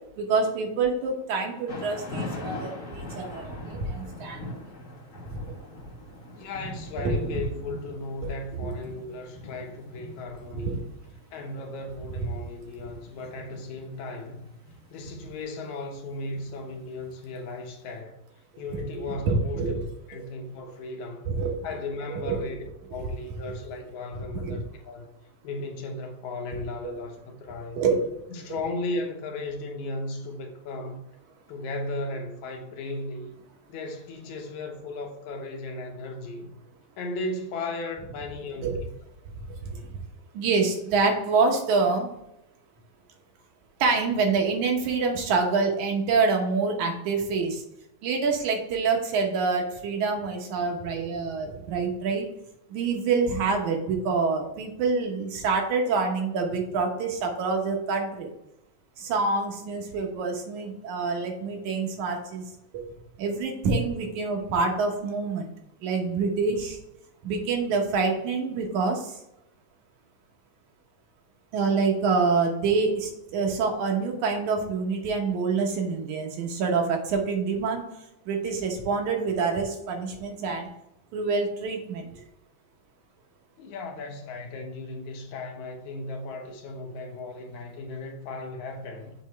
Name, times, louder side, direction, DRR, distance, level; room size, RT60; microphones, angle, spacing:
voice 1, 0.2-4.4 5.4-5.5 7.0-7.1 8.6-8.7 10.5-10.8 19.3-19.7 21.3-21.5 22.1-22.4 24.3-24.6 27.7-28.0 38.6-38.8 39.6-39.8 40.3-42.1 43.8-47.6 48.0-52.3 52.7-58.3 59.0-62.4 62.7-62.8 63.2-65.5 65.8-66.8 67.2-69.2 71.5-77.8 78.3-80.7 81.1-82.2, right 4 dB, 85° right, 2.6 m, -26 dB
Thunder / Rain, 1.7-17.7, left 1 dB, 45° left, 1.0 m, -41 dB
voice 2, 6.3-10.9 11.3-14.5 14.9-18.2 18.6-19.8 20.1-21.3 21.6-22.6 22.9-25.1 25.4-27.9 28.3-31.0 31.5-33.4 33.7-36.5 37.0-38.9 83.6-89.1, left 2 dB, 80° left, 2.3 m, -36 dB
7.1 x 3.1 x 5.6 m
omnidirectional pair, 3.3 m